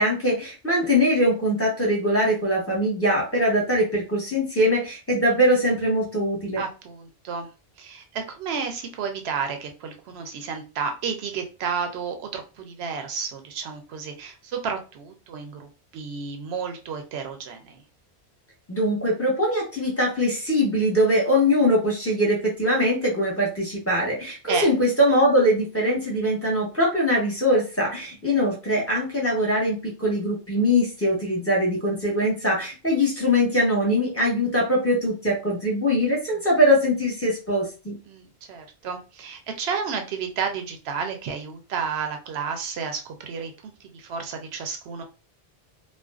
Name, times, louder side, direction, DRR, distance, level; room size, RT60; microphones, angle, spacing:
voice 1, 0.0-6.6 18.7-38.0, equal, 15° left, -2 dB, 0.8 m, -22 dB
voice 2, 6.6-7.5 7.8-17.8 24.5-24.7 38.1-45.0, right 6 dB, 80° right, 5 dB, 0.8 m, -32 dB
2.4 x 2.2 x 2.3 m, 0.32 s
omnidirectional pair, 1.1 m